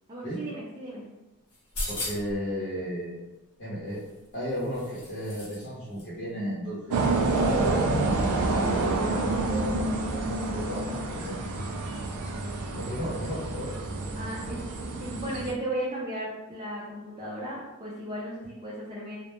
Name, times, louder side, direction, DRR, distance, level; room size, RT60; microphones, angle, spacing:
voice 1, 0.1-1.0 12.6-13.0 14.1-19.2, right 1 dB, 25° right, -7 dB, 0.4 m, -36 dB
sound 1, 1.5-2.4 3.9-5.7 5.9-6.1, left 1 dB, 85° left, 0.8 m, -37 dB
voice 2, 1.9-3.2 3.6-4.0 4.3-8.2 8.6-11.4 12.7-13.7, equal, 55° left, -9 dB, 0.7 m, -34 dB
sound 2, 6.9-15.5, right 2 dB, 85° right, 0.4 m, -28 dB
2.1 x 2.0 x 3.0 m, 1.0 s
head